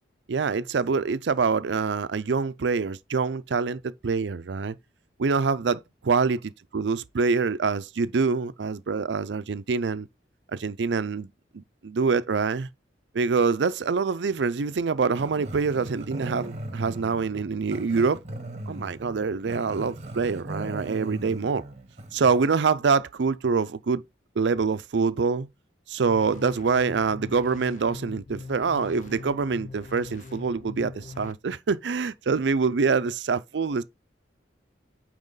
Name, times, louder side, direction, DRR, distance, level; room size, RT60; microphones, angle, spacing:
voice 1, 0.3-4.8 5.2-10.1 10.5-12.7 13.1-18.2 18.7-21.6 22.1-24.0 24.4-25.5 25.9-33.8, right 5 dB, 75° right, 0.5 m, -25 dB
Growling, 15.1-22.5, right 1 dB, 35° right, 1.1 m, -38 dB
sound 1, 26.1-31.3, left 3 dB, 45° left, 0.4 m, -41 dB
8.9 x 3.0 x 4.0 m
head